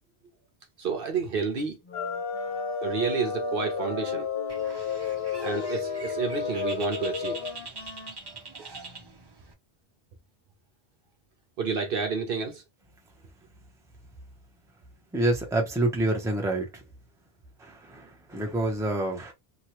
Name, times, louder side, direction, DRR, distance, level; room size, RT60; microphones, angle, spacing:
voice 1, 0.8-1.8 2.8-4.3 5.4-7.4 11.6-12.6, right 5 dB, 60° right, 0.8 m, -30 dB
Wind instrument woodwind instrument, 1.8-9.3, left 3 dB, 35° left, 0.7 m, -46 dB
sound 1, 1.9-7.5, left 6 dB, 70° left, 0.9 m, -31 dB
Bird, 4.5-9.5, right 3 dB, 40° right, 0.3 m, -43 dB
voice 2, 15.1-16.8 17.6-19.3, right 2 dB, 5° right, 0.7 m, -27 dB
2.9 x 2.3 x 2.9 m
omnidirectional pair, 1.1 m